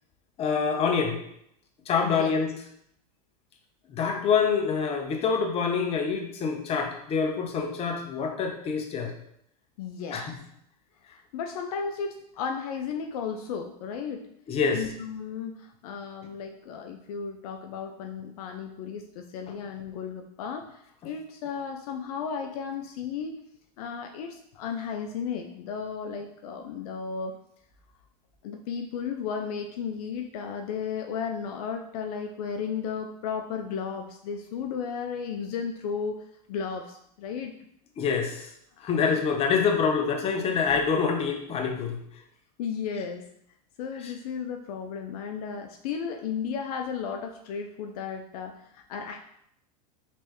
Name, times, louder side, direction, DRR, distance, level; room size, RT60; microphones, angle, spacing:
voice 1, 0.4-1.2 1.9-2.5 3.9-9.1 10.1-10.3 14.5-14.8 38.0-38.5 38.8-42.0 44.0-44.1, left 5 dB, 30° left, 3 dB, 0.8 m, -26 dB
voice 2, 9.8-10.3 11.0-14.3 14.7-23.4 23.8-27.4 28.4-37.6 38.8-39.1 42.6-43.3 43.8-49.3, left 6 dB, 65° left, 4 dB, 0.5 m, -34 dB
4.2 x 3.2 x 3.0 m, 0.72 s
hypercardioid pair, 115°, 20 cm